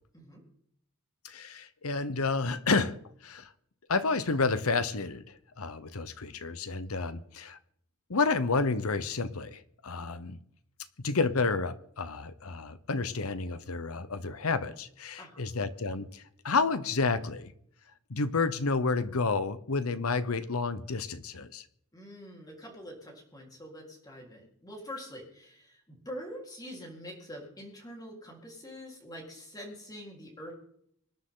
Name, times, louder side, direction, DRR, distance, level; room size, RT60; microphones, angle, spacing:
voice 1, 1.2-2.9 3.2-3.5 3.9-5.2 5.6-7.6 8.1-10.4 11.0-17.5 18.1-21.6, left 4 dB, 80° left, 1.0 m, -30 dB
voice 2, 21.9-30.5, equal, 20° left, 4.1 m, -45 dB
25.0 x 10.0 x 3.9 m
head